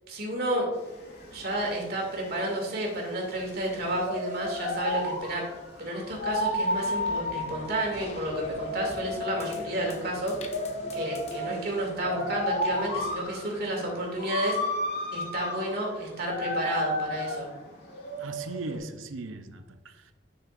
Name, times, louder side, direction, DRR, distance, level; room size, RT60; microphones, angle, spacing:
voice 1, 0.1-0.7 1.3-5.5 5.8-10.6 10.9-14.7 15.1-17.5, right 1 dB, 50° right, 2.3 m, -31 dB
sound 1, 0.7-18.8, left 1 dB, 55° left, 1.9 m, -33 dB
sound 2, 6.7-13.2, left 1 dB, 35° left, 0.7 m, -44 dB
voice 2, 18.2-20.1, right 3 dB, 85° right, 0.6 m, -38 dB
10.5 x 6.3 x 2.5 m
head